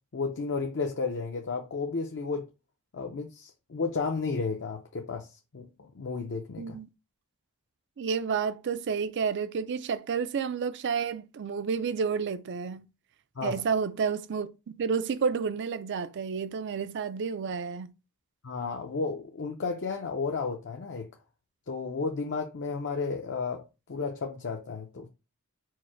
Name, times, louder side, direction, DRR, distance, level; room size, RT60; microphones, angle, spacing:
voice 1, 0.1-2.5 2.9-5.3 5.5-6.8 13.4-13.6 18.4-21.1 21.7-23.6 23.9-25.1, left 4 dB, 55° left, 0.6 m, -32 dB
voice 2, 8.0-12.8 13.4-14.5 14.8-17.9, right 6 dB, 55° right, 0.4 m, -30 dB
4.6 x 2.1 x 4.5 m
head